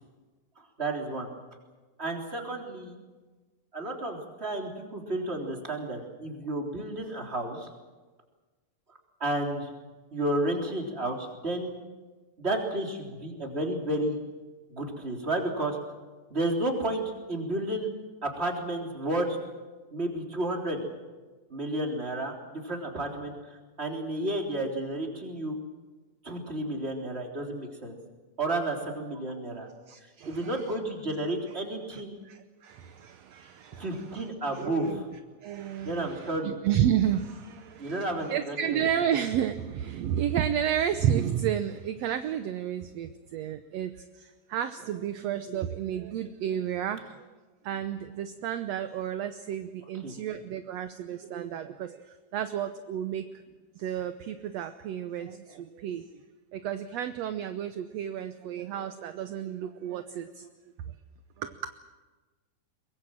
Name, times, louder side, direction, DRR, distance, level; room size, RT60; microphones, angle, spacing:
voice 1, 0.6-1.3 2.0-2.9 3.7-7.7 9.2-9.7 10.1-11.7 12.4-14.2 14.7-15.8 16.3-17.9 18.2-19.4 19.9-20.8 21.5-25.6 26.2-28.0 28.4-29.7 30.2-32.1 33.7-34.9 35.8-36.5 37.8-38.8 50.0-50.1, right 1 dB, 20° right, 1 dB, 3.6 m, -32 dB
voice 2, 29.9-30.7 31.9-34.2 34.6-35.0 35.4-47.3 47.6-53.4 53.7-56.1 56.5-60.5 60.9-61.0 61.4-61.7, right 9 dB, 70° right, 9 dB, 1.8 m, -32 dB
23.0 x 22.0 x 7.6 m, 1.3 s
omnidirectional pair, 3.7 m